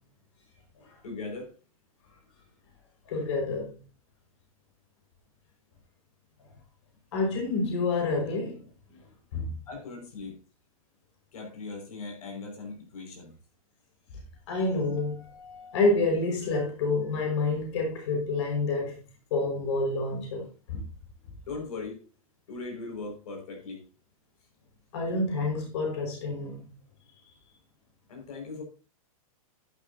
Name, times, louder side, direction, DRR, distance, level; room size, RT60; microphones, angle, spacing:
voice 1, 1.0-1.5 9.7-10.4 11.3-13.3 21.5-22.0 22.5-23.8 28.1-28.6, left 3 dB, 85° left, 5.8 m, -39 dB
voice 2, 3.1-3.8 7.1-8.6 9.3-9.6 14.5-19.0 19.3-20.8 24.9-26.6, left 3 dB, 50° left, 5.4 m, -28 dB
12.0 x 11.5 x 2.8 m
supercardioid pair, 170°, 18 cm